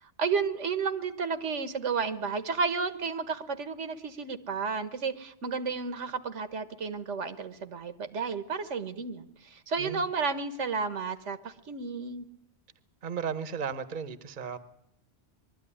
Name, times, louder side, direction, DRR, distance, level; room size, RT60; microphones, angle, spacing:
voice 1, 0.0-12.3, right 5 dB, 75° right, 11 dB, 1.5 m, -32 dB
voice 2, 13.0-14.6, right 6 dB, 45° right, 13 dB, 1.1 m, -35 dB
22.0 x 13.0 x 9.9 m, 0.80 s
omnidirectional pair, 1.2 m